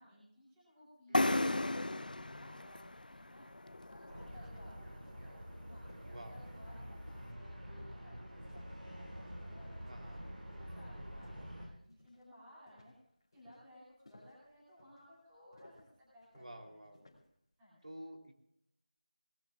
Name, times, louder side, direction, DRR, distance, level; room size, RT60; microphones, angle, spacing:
voice 1, 0.0-12.9 13.3-16.8 17.6-17.8, left 1 dB, 5° right, -10 dB, 2.5 m, -60 dB
sound 1, 1.1-4.8, left 2 dB, 80° left, 0.8 m, -35 dB
sound 2, 3.6-11.6 11.9-12.3 12.7-17.4, left 2 dB, 35° left, 2.9 m, -64 dB
sound 3, 4.1-11.7, equal, 90° right, 7.8 m, -48 dB
voice 2, 6.0-6.4 9.9-10.2 16.3-17.1 17.8-18.3, right 1 dB, 55° right, 2 dB, 3.2 m, -50 dB
26.0 x 19.0 x 2.4 m, 0.78 s
figure-of-eight pair, 180°, 5 cm